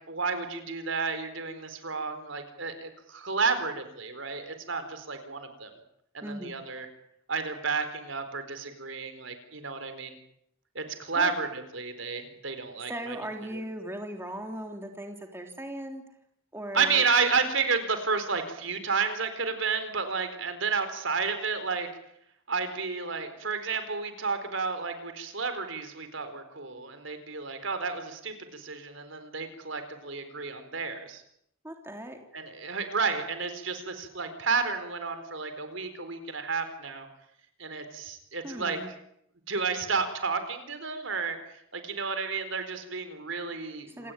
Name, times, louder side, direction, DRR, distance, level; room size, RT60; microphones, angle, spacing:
voice 1, 0.1-5.7 6.1-6.9 7.3-10.2 10.7-13.2 13.5-13.6 16.7-21.9 22.5-31.2 32.3-37.1 37.6-38.8 39.5-44.1, right 5 dB, 65° right, 9 dB, 4.4 m, -31 dB
voice 2, 6.2-6.5 11.1-11.3 12.9-16.0 16.5-17.0 31.6-32.2 38.4-38.9 44.0-44.1, right 1 dB, 10° right, 3 dB, 3.3 m, -38 dB
27.5 x 19.0 x 9.3 m, 0.75 s
head